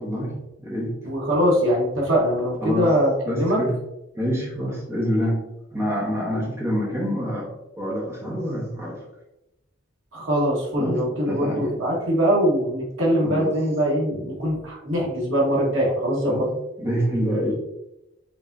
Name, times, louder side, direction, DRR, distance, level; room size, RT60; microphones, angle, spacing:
voice 1, 0.0-1.0 2.6-2.9 3.3-3.7 4.2-5.4 5.7-9.0 10.8-11.7 13.2-13.5 16.2-16.5 16.8-17.5, equal, 15° right, -5 dB, 1.2 m, -26 dB
voice 2, 1.0-3.6 10.1-16.5, equal, 75° right, -3 dB, 1.5 m, -22 dB
5.2 x 3.5 x 2.7 m, 0.90 s
head